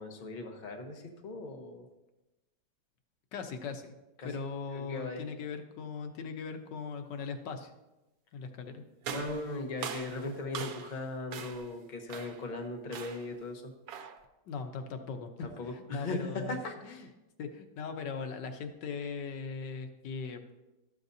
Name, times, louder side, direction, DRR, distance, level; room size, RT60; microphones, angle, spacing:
voice 1, 0.0-1.9 4.2-4.4 4.7-5.2 9.1-13.7 15.4-17.1, left 2 dB, 35° left, 4 dB, 0.9 m, -38 dB
voice 2, 3.3-3.9 4.2-7.7 8.3-8.8 14.5-16.6 16.8-17.0 17.4-20.4, left 5 dB, 90° left, 7 dB, 1.5 m, -39 dB
sound 1, 9.0-11.0 11.3-11.7 12.1-12.5 12.9-13.3 13.9-14.3, right 7 dB, 65° right, 1.1 m, -41 dB
12.5 x 7.6 x 2.7 m, 1.0 s
omnidirectional pair, 1.8 m